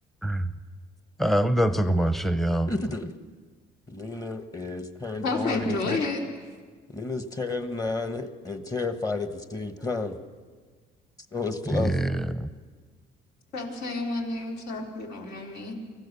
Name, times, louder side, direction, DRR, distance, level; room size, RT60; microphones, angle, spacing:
voice 1, 1.2-2.7 11.7-12.5, right 1 dB, ahead, 10 dB, 0.8 m, -24 dB
voice 2, 2.7-3.1 3.9-6.0 6.9-10.2 11.3-12.0, left 3 dB, 20° left, 8 dB, 1.3 m, -31 dB
voice 3, 5.2-6.2 13.5-15.7, left 2 dB, 75° left, 0 dB, 4.3 m, -30 dB
24.5 x 15.5 x 6.9 m, 1.5 s
cardioid pair, 110°, 17 cm